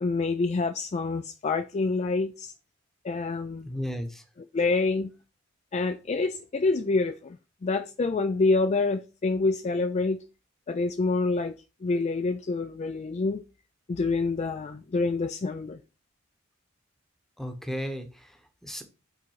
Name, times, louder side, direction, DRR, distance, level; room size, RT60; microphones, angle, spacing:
voice 1, 0.0-2.5 3.0-3.7 4.5-5.1 5.7-7.4 7.6-10.2 10.7-11.5 11.8-13.4 13.9-15.8, left 3 dB, 30° left, 0.3 m, -27 dB
voice 2, 3.6-4.2 17.4-18.8, equal, ahead, 0.9 m, -35 dB
5.3 x 4.0 x 5.6 m
head